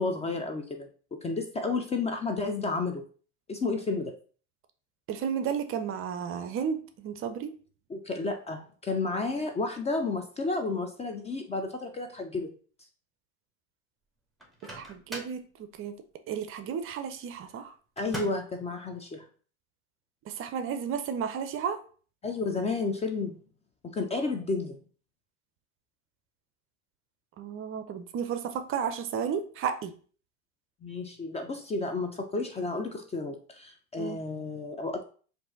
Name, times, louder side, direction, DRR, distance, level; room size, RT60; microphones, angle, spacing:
voice 1, 0.0-3.0 3.5-4.1 7.9-12.5 18.0-19.2 22.2-23.3 23.8-24.8 30.8-35.0, left 3 dB, 15° left, 5 dB, 0.4 m, -32 dB
voice 2, 5.1-7.5 14.8-16.0 16.3-17.7 20.3-21.8 27.4-29.9 34.0-34.2, right 7 dB, 35° right, 9 dB, 0.5 m, -33 dB
Microwave oven, 14.4-15.4 18.0-18.6, right 1 dB, ahead, 1.2 m, -41 dB
4.5 x 2.6 x 3.8 m, 0.41 s
hypercardioid pair, 95°, 39 cm